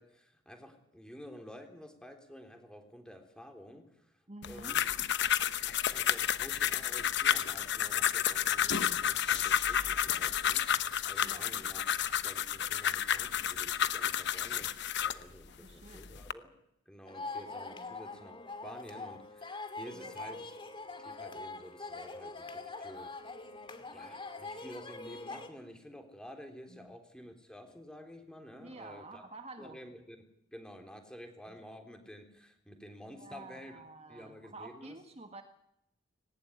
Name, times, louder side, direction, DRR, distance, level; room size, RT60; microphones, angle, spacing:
voice 1, 0.0-4.9 5.7-11.8 12.2-16.5 16.9-18.4 18.6-20.5 21.0-23.4 23.9-29.2 29.6-30.2 30.5-33.8 34.1-35.0, equal, 5° left, 5 dB, 3.5 m, -51 dB
voice 2, 4.3-4.8 11.2-11.6 15.5-16.1 17.8-18.0 19.9-20.4 26.7-27.0 28.6-29.8 31.5-31.6 33.1-35.4, right 2 dB, 30° right, 6 dB, 1.7 m, -50 dB
sound 1, 4.4-15.2 15.9-16.3, left 9 dB, 60° left, 1.0 m, -31 dB
sound 2, 17.1-25.5, left 3 dB, 25° left, 2.3 m, -43 dB
19.5 x 19.0 x 9.6 m, 0.79 s
head